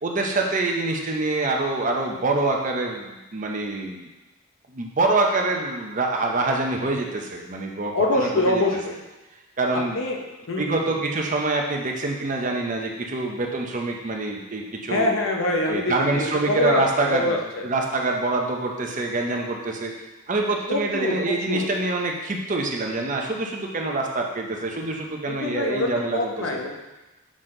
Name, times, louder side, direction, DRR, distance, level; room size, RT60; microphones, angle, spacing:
voice 1, 0.0-4.1 4.7-8.6 9.6-10.0 10.6-15.1 15.7-19.9 20.3-26.6, right 2 dB, 40° right, 1 dB, 0.7 m, -25 dB
voice 2, 7.9-9.0 9.7-10.2 10.5-11.0 14.9-16.8 17.1-17.7 20.7-21.7 25.3-26.7, left 2 dB, 70° left, 1 dB, 0.9 m, -25 dB
6.2 x 4.2 x 3.8 m, 1.1 s
head